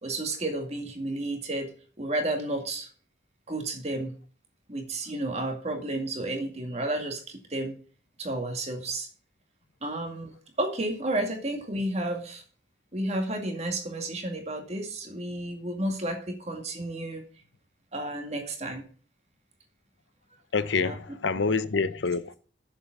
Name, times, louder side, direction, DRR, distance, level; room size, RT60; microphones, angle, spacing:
voice 1, 0.0-1.7 2.0-2.9 3.5-4.2 4.7-7.8 8.2-9.1 9.8-12.4 12.9-17.2 17.9-18.9 20.8-21.0 21.4-21.5, right 1 dB, 35° right, 2.2 m, -32 dB
voice 2, 20.5-22.3, left 4 dB, 75° left, 0.7 m, -27 dB
7.4 x 7.1 x 7.2 m
head